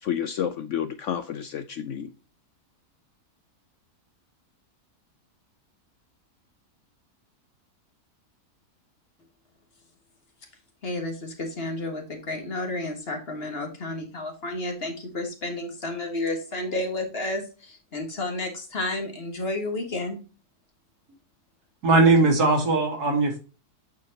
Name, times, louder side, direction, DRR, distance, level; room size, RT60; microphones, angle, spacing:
voice 1, 0.0-2.1, left 9 dB, 70° left, 0.7 m, -30 dB
voice 2, 10.8-20.2, left 2 dB, 40° left, 1.6 m, -31 dB
voice 3, 21.8-23.4, right 3 dB, 85° right, 2.5 m, -19 dB
8.6 x 4.6 x 2.8 m
omnidirectional pair, 1.6 m